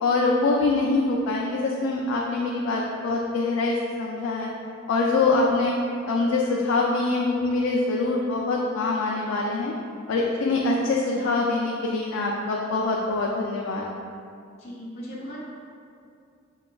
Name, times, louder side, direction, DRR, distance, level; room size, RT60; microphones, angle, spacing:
voice 1, 0.0-4.5 4.9-5.7 6.1-9.7 10.1-13.9, left 3 dB, 80° left, -2 dB, 0.3 m, -24 dB
voice 2, 14.6-15.5, equal, 35° left, -10 dB, 0.5 m, -38 dB
5.2 x 2.2 x 2.2 m, 2.4 s
head